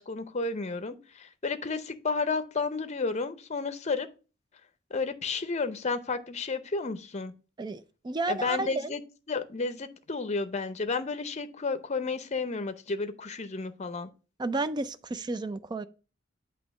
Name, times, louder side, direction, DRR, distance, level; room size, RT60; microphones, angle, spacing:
voice 1, 0.0-4.1 4.9-7.3 8.3-9.0 9.3-14.1, left 4 dB, 35° left, 0.6 m, -32 dB
voice 2, 7.6-8.9 14.4-15.8, right 2 dB, 20° right, 0.4 m, -32 dB
8.3 x 2.9 x 5.9 m
head